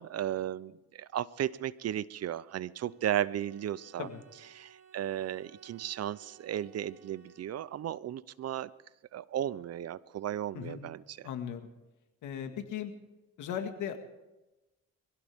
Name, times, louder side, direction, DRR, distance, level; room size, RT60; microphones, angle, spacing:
voice 1, 0.0-4.1 4.5-8.7 9.1-11.3, right 11 dB, 55° right, 19 dB, 0.6 m, -35 dB
Bowed string instrument, 2.8-8.1, right 8 dB, 85° right, 3.7 m, -59 dB
voice 2, 11.2-11.7 12.2-12.9 13.4-14.0, left 8 dB, 80° left, 6 dB, 1.9 m, -37 dB
23.5 x 16.5 x 3.6 m, 1.0 s
cardioid pair, 90°, 30 cm